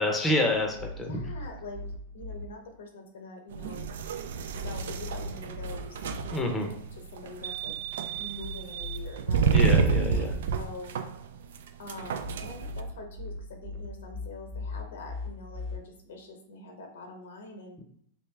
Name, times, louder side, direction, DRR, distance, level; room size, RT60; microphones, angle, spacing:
voice 1, 0.0-1.2 6.3-6.7 9.5-10.3, left 1 dB, 10° left, 2 dB, 0.6 m, -28 dB
sound 1, 0.5-2.4 4.3-6.2 8.1-10.1 11.9-15.8, left 2 dB, 40° right, 0.9 m, -40 dB
voice 2, 1.0-3.9 4.6-6.7 7.1-7.8 8.2-9.8 10.1-11.0 11.8-17.8, left 2 dB, 85° left, 3 dB, 0.9 m, -44 dB
sound 2, 3.5-12.8, right 5 dB, 80° right, 0.3 m, -29 dB
3.3 x 2.7 x 3.3 m, 0.65 s
supercardioid pair, 145°, 0 cm